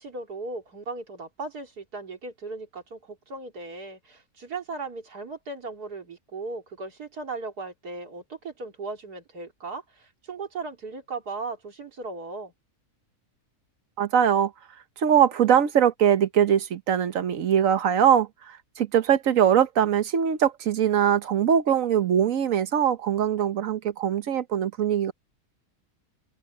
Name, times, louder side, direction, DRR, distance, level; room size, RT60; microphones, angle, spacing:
voice 1, 0.0-12.5, right 3 dB, 90° right, 3.6 m, -37 dB
voice 2, 14.0-14.5 15.0-25.1, right 9 dB, 60° right, 1.3 m, -22 dB
omnidirectional pair, 1.6 m